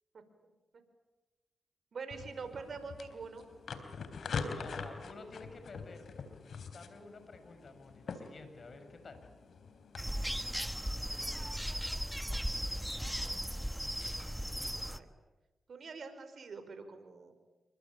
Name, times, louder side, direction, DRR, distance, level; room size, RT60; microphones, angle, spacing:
voice 1, 1.9-3.5 11.3-11.9 14.3-15.1 15.7-17.4, right 4 dB, 65° right, 9 dB, 5.3 m, -46 dB
Top screwed onto plastic bottle, 2.1-10.0, left 5 dB, 75° left, 3.5 m, -44 dB
voice 2, 4.4-6.1 6.7-9.2, left 3 dB, 60° left, 7 dB, 6.5 m, -51 dB
sound 1, 10.0-15.0, equal, 5° right, 1.6 m, -37 dB
28.0 x 24.0 x 8.8 m, 1.1 s
supercardioid pair, 50°, 0 cm